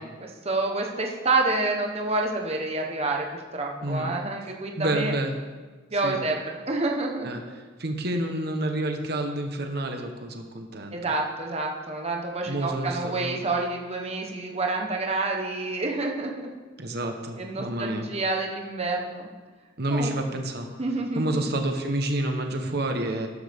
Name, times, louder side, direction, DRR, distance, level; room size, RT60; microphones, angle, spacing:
voice 1, 0.0-5.1 5.9-7.3 10.9-16.5 17.4-19.3 19.9-20.1 20.8-21.2, right 3 dB, 35° right, 1 dB, 1.2 m, -28 dB
voice 2, 4.8-5.3 6.0-6.2 7.2-7.4 7.8-11.1 12.5-13.4 16.8-18.1 19.8-20.7 21.1-23.3, right 1 dB, 55° right, 4 dB, 1.1 m, -29 dB
13.0 x 12.0 x 3.6 m, 1.4 s
head